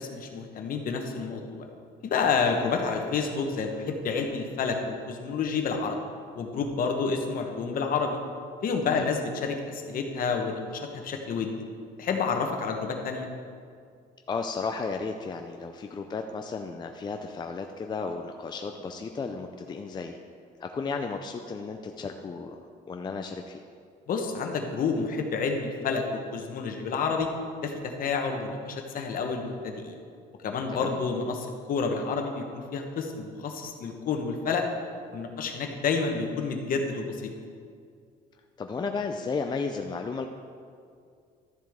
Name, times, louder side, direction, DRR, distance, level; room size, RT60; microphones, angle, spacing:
voice 1, 0.0-1.7 2.0-6.0 6.3-8.2 8.6-11.5 12.0-13.3 24.1-27.3 27.6-29.9 30.4-34.6 35.1-37.3, left 5 dB, 55° left, 4 dB, 1.2 m, -29 dB
voice 2, 14.3-20.2 20.6-22.6 22.9-23.6 30.7-30.9 38.6-40.3, left 4 dB, 25° left, 5 dB, 0.5 m, -34 dB
12.0 x 7.4 x 3.7 m, 2.2 s
cardioid pair, 110°, 17 cm